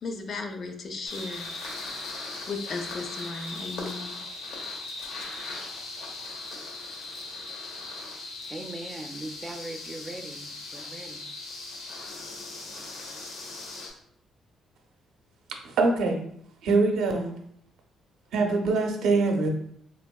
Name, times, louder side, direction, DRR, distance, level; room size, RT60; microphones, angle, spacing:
voice 1, 0.0-1.5 2.5-4.2, left 3 dB, 55° left, 0.6 m, -35 dB
sound 1, 1.1-13.9, left 2 dB, 80° left, 0.9 m, -39 dB
voice 2, 8.5-11.2, right 2 dB, 20° right, 0.4 m, -40 dB
voice 3, 15.6-16.2 16.6-17.4 18.3-19.5, right 3 dB, 80° right, 0.7 m, -23 dB
3.4 x 3.4 x 2.3 m
cardioid pair, 90°, 0 cm